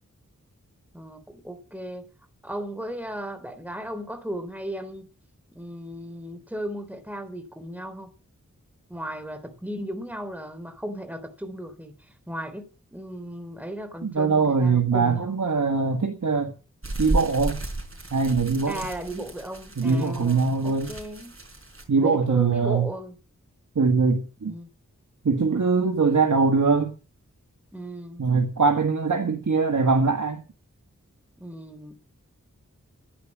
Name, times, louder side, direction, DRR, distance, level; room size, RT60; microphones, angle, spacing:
voice 1, 0.9-2.0 2.4-5.0 5.5-8.1 8.9-11.9 12.3-15.4 18.7-21.4 22.0-23.2 24.4-24.7 27.7-28.2 31.4-32.0, equal, 5° right, 3.7 m, -36 dB
voice 2, 14.0-16.5 17.0-17.6 18.1-18.8 19.8-20.9 21.9-22.9 23.7-24.5 25.2-26.9 28.2-30.4, right 4 dB, 70° right, 1.7 m, -22 dB
sound 1, 16.8-21.8, right 2 dB, 45° right, 4.8 m, -33 dB
11.0 x 10.5 x 7.5 m
wide cardioid pair, 45°, 31 cm